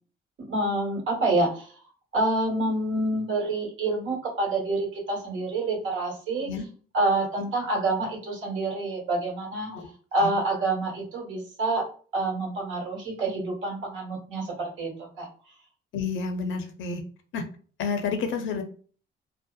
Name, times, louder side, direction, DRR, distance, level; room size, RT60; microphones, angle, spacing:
voice 1, 0.5-1.7 2.1-6.5 6.9-9.7 10.1-11.8 12.1-15.3, right 2 dB, 75° right, -1 dB, 1.3 m, -27 dB
voice 2, 15.9-17.0 17.3-17.4 17.8-18.6, left 5 dB, 75° left, 6 dB, 0.5 m, -30 dB
2.6 x 2.0 x 2.2 m, 0.41 s
cardioid pair, 90°, 20 cm